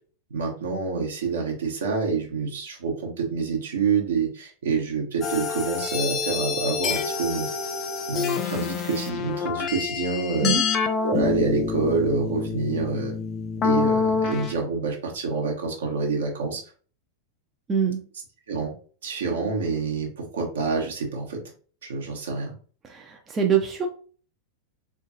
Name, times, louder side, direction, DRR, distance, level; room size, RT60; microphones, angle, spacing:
voice 1, 0.3-7.5 8.1-10.5 11.0-13.2 13.6-16.6 18.5-18.7 19.0-21.4 21.8-22.5, right 4 dB, 65° right, 1 dB, 1.0 m, -27 dB
sound 1, 5.2-14.5, left 5 dB, 30° left, 0.4 m, -27 dB
voice 2, 17.7-18.0 22.8-23.9, right 7 dB, 20° right, 2 dB, 0.5 m, -24 dB
3.7 x 2.4 x 2.7 m, 0.41 s
figure-of-eight pair, 90°, 0 cm